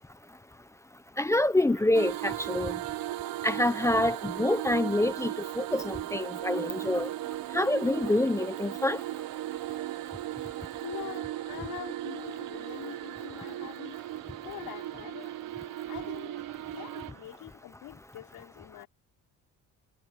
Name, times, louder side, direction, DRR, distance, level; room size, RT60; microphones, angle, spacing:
voice 1, 1.2-2.7 3.4-7.1 7.5-9.0, left 1 dB, 10° left, 0.6 m, -26 dB
Crowd, 1.3-17.6, right 12 dB, 60° right, 6.8 m, -53 dB
sound 1, 1.9-17.1, right 14 dB, 85° right, 0.9 m, -37 dB
voice 2, 10.8-14.0 14.4-15.3 15.9-18.9, left 14 dB, 90° left, 4.8 m, -44 dB
cardioid pair, 180°, 34 cm